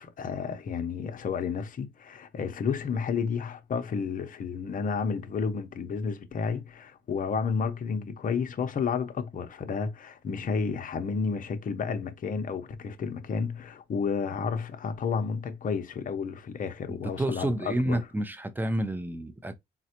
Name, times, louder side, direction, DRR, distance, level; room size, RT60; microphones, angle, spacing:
voice 1, 0.0-18.0, left 5 dB, 45° left, 0.7 m, -31 dB
voice 2, 16.9-19.5, right 1 dB, 10° right, 0.5 m, -30 dB
3.9 x 2.1 x 2.9 m
cardioid pair, 90°, 20 cm